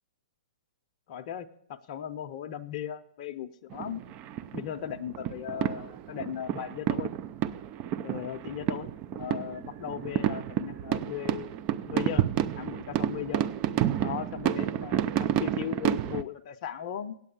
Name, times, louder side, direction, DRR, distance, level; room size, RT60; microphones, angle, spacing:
voice 1, 1.1-4.0 4.5-7.1 8.0-11.5 11.9-12.3 12.6-13.5 14.0-17.2, left 10 dB, 45° left, 7 dB, 0.6 m, -37 dB
sound 1, 3.7-16.2, right 11 dB, 30° right, 0.4 m, -30 dB
8.7 x 8.2 x 7.0 m, 0.69 s
hypercardioid pair, 120°, 4 cm